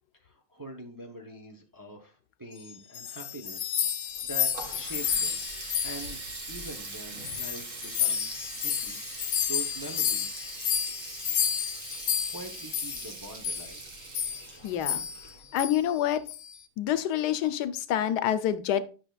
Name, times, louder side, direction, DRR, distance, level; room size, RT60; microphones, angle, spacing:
voice 1, 0.2-6.2 6.5-10.4 11.4-11.6 12.3-13.8, right 2 dB, 20° right, 0.6 m, -44 dB
sound 1, 2.7-6.9 7.2-13.1 13.4-13.7 14.1-14.5 14.8-15.3 15.6-15.8 16.3-16.6, left 8 dB, 65° left, 1.1 m, -31 dB
Water tap faucet, 4.1-15.8, right 3 dB, 55° right, 1.6 m, -42 dB
voice 2, 14.6-15.0 15.5-16.2 16.8-18.8, left 10 dB, 90° left, 1.2 m, -27 dB
9.7 x 5.9 x 2.3 m
omnidirectional pair, 1.7 m